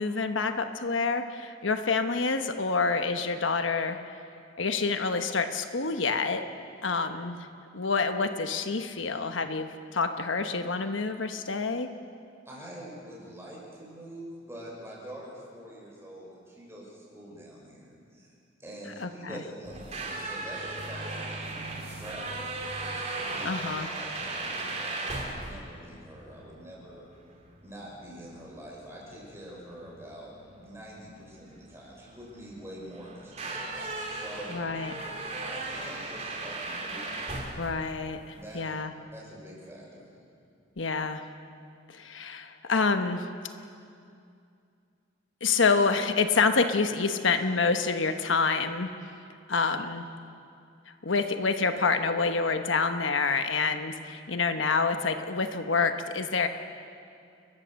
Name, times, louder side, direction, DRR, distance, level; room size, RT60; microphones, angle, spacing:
voice 1, 0.0-4.0 4.6-6.4 6.8-7.5 7.7-11.9 19.0-19.1 23.4-23.9 34.5-35.1 37.6-38.9 40.8-41.2 41.9-43.3 45.4-48.9 49.5-50.1 51.0-56.5, left 4 dB, 80° left, 7 dB, 1.1 m, -27 dB
voice 2, 12.4-18.3 18.6-22.6 22.8-27.1 27.6-34.6 35.4-37.3 38.3-38.6 39.1-40.1, right 1 dB, 15° right, -4 dB, 6.2 m, -45 dB
sound 1, 19.6-38.6, right 2 dB, 35° right, 2.9 m, -37 dB
29.5 x 15.0 x 6.5 m, 2.5 s
head